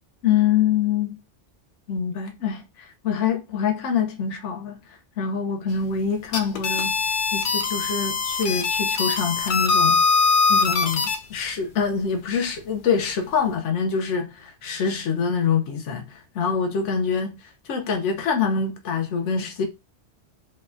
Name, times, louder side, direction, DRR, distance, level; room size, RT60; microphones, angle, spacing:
voice 1, 0.2-1.1 1.9-4.8 5.2-7.0 7.3-10.0 10.5-17.4 17.6-19.6, left 6 dB, 80° left, 1.0 m, -25 dB
sound 1, 6.2-11.2, left 4 dB, 60° left, 0.6 m, -22 dB
3.9 x 2.3 x 2.5 m
omnidirectional pair, 1.2 m